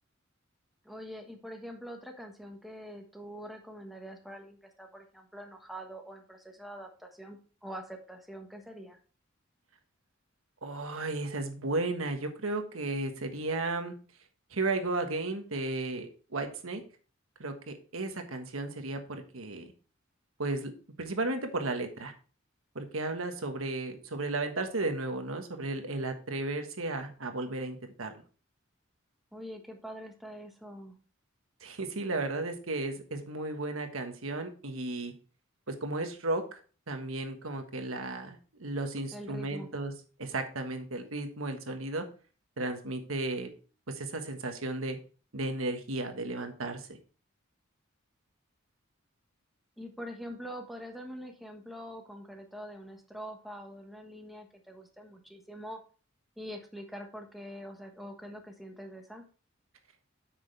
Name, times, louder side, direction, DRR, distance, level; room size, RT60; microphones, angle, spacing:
voice 1, 0.8-9.0 29.3-30.9 39.1-39.7 49.8-55.8 56.4-59.3, equal, ahead, 2 dB, 1.3 m, -44 dB
voice 2, 10.6-13.9 14.5-16.8 17.4-19.7 20.4-20.7 21.0-22.1 22.7-28.2 31.6-35.1 35.7-36.6 36.9-39.9 40.2-42.0 42.6-43.5 43.9-45.0 45.3-47.0, right 2 dB, 85° right, 6 dB, 1.4 m, -34 dB
8.4 x 6.2 x 3.3 m, 0.37 s
head